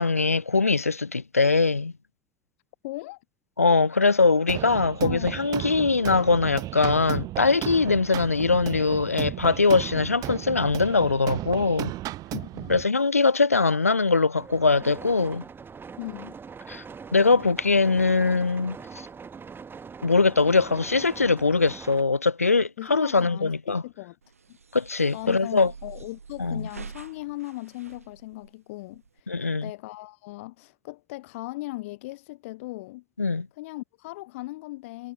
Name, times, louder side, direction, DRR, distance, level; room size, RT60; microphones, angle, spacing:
voice 1, 0.0-1.9 3.6-11.9 12.7-15.4 16.7-16.8 17.1-18.8 20.0-23.8 24.7-25.7 26.4-26.7 29.3-29.7 33.2-33.5, left 4 dB, 85° left, 0.9 m, -22 dB
voice 2, 2.8-3.2 5.0-5.3 12.3-12.8 16.0-16.3 22.8-24.2 24.5-24.6 25.1-29.4 29.6-33.0 33.5-35.1, left 20 dB, 65° left, 1.9 m, -38 dB
sound 1, 4.5-12.8, right 16 dB, 50° right, 1.4 m, -34 dB
sound 2, 14.3-22.0, right 5 dB, 30° right, 2.7 m, -42 dB
sound 3, 24.2-29.2, right 5 dB, 80° right, 2.1 m, -46 dB
figure-of-eight pair, 60°, 8 cm